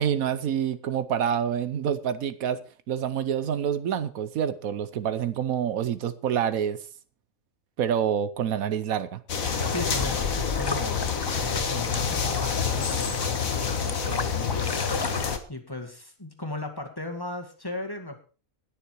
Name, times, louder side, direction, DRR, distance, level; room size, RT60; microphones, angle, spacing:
voice 1, 0.0-6.8 7.8-9.2, right 8 dB, 75° right, 1.3 m, -27 dB
sound 1, 9.3-15.4, left 6 dB, 70° left, 1.8 m, -28 dB
sound 2, 9.4-15.4, left 4 dB, 35° left, 0.4 m, -34 dB
voice 2, 9.7-11.1 11.4-15.2 15.5-18.2, left 1 dB, 15° left, 2.0 m, -37 dB
20.0 x 6.8 x 4.6 m
omnidirectional pair, 1.5 m